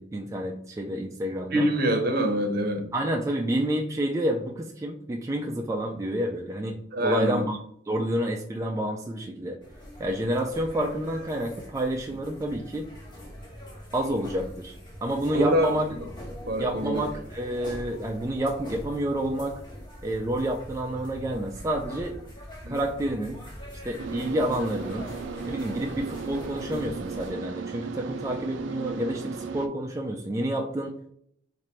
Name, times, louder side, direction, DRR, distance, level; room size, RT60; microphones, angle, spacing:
voice 1, 0.0-1.7 2.9-6.8 7.0-7.6 7.9-9.6 10.0-12.9 13.9-14.7 15.0-15.8 16.6-19.6 20.0-22.1 22.7-23.4 23.8-25.1 25.5-30.9, right 1 dB, 15° right, 1 dB, 0.3 m, -29 dB
voice 2, 1.5-2.9 6.9-7.4 15.3-15.7 16.5-17.0 22.6-22.8, right 1 dB, 60° right, 5 dB, 0.7 m, -25 dB
sound 1, 9.6-27.3, equal, 25° left, 1.2 m, -43 dB
sound 2, 24.0-29.7, right 4 dB, 85° right, 0.4 m, -36 dB
3.1 x 2.5 x 4.2 m, 0.67 s
head